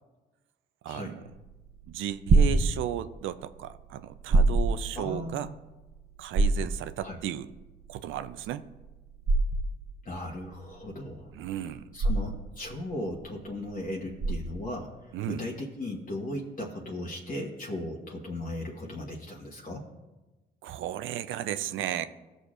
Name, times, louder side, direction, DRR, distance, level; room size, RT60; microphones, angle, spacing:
voice 1, 0.8-1.2 1.9-5.5 6.2-7.5 7.9-8.6 11.3-11.9 15.1-15.4 20.6-22.1, right 11 dB, 80° right, 12 dB, 0.5 m, -34 dB
sound 1, 1.3-14.8, right 3 dB, 55° right, 0.9 m, -27 dB
voice 2, 4.9-5.5 7.0-7.2 10.0-11.3 11.9-14.9 15.3-19.9, left 1 dB, 45° left, -3 dB, 1.3 m, -37 dB
15.5 x 6.5 x 2.5 m, 1.1 s
cardioid pair, 90°, 20 cm